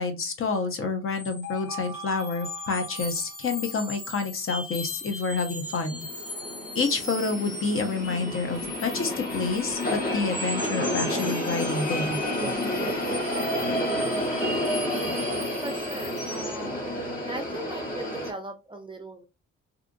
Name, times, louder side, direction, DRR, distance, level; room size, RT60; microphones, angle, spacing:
voice 1, 0.0-6.0 6.7-12.2, left 4 dB, 45° left, 6 dB, 0.8 m, -28 dB
sound 1, 1.2-16.7, left 1 dB, 80° left, 1.4 m, -38 dB
sound 2, 5.7-18.3, left 1 dB, 30° left, 1.2 m, -30 dB
voice 2, 15.3-16.9 17.2-19.2, right 1 dB, 15° right, 5 dB, 0.5 m, -39 dB
2.8 x 2.4 x 2.5 m, 0.27 s
cardioid pair, 90°, 30 cm